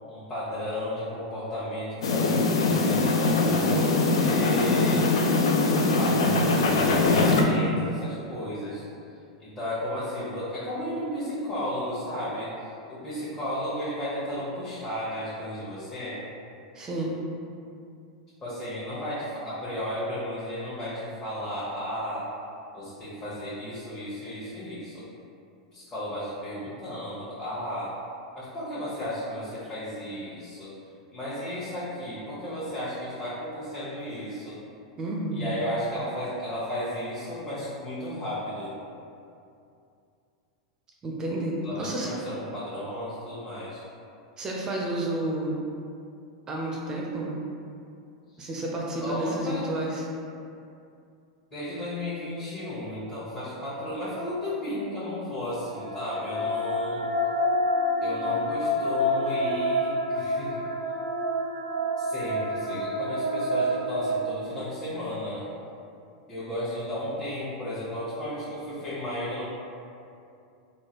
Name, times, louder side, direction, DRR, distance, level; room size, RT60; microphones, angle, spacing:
voice 1, 0.1-5.0 5.9-8.8 9.4-16.2 18.4-22.3 22.7-25.1 25.7-28.0 28.3-30.7 31.1-34.6 35.3-38.7 41.6-43.8 48.3-48.5 49.0-49.7 51.5-57.0 58.0-60.7 62.0-65.4 66.3-69.5, left 1 dB, 25° left, -11 dB, 1.0 m, -34 dB
sound 1, 2.0-7.4, left 3 dB, 65° left, 0.4 m, -22 dB
voice 2, 16.7-17.2 35.0-35.5 41.0-42.1 44.4-45.5 46.5-47.3 48.4-50.0, right 1 dB, 25° right, -3 dB, 0.5 m, -30 dB
sound 2, 55.6-64.8, equal, 80° right, 0.5 m, -28 dB
3.7 x 2.3 x 2.9 m, 2.5 s
figure-of-eight pair, 95°, 3 cm